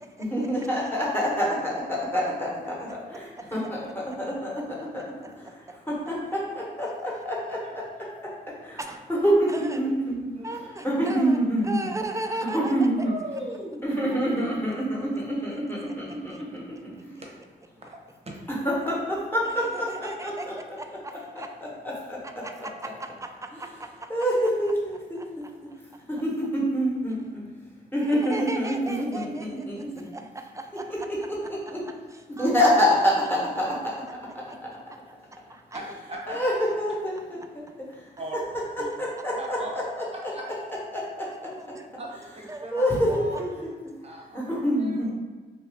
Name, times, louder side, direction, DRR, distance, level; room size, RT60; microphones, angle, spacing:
voice 1, 0.2-5.0 5.3-5.5 5.9-8.3 8.6-8.8 9.1-10.3 10.8-11.8 12.5-13.0 13.8-17.1 18.6-20.8 21.4-22.4 24.1-25.5 26.1-27.4 27.9-30.0 30.9-31.8 32.4-34.7 36.3-36.5 36.8-37.7 39.0-40.3 40.9-41.5 42.7-43.7 44.3-45.1, equal, 10° left, -4 dB, 1.1 m, -27 dB
voice 2, 5.2-5.5 8.8-9.0 9.5-9.8 10.4-12.9 13.3-13.4 16.1-16.4 19.4-21.6 22.2-24.1 25.2-26.0 27.9-31.7 32.1-32.7 34.5-34.6 35.5-35.8 41.4-41.9 42.5-43.4, right 2 dB, 15° right, 5 dB, 0.3 m, -38 dB
voice 3, 10.4-10.7 13.0-13.8 14.3-14.7 17.8-18.0 35.7-35.8 36.1-36.4 38.2-38.4 38.8-38.9 39.3-39.7 40.1-40.5 42.0-42.1 42.3-43.6 44.0-45.1, right 1 dB, 30° right, -1 dB, 0.8 m, -39 dB
3.0 x 2.3 x 3.5 m, 1.3 s
cardioid pair, 70°, 19 cm